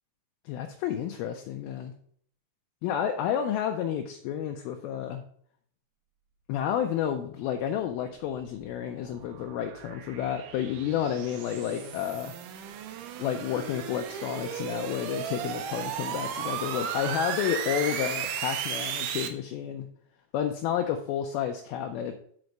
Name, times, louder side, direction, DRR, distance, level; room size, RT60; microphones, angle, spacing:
voice 1, 0.5-1.9 2.8-5.2 6.5-12.3 13.2-19.9 20.3-22.2, left 9 dB, 80° left, 5 dB, 2.4 m, -30 dB
sound 1, 8.1-19.3, right 9 dB, 85° right, 1.8 m, -35 dB
6.5 x 5.2 x 5.9 m, 0.62 s
omnidirectional pair, 4.6 m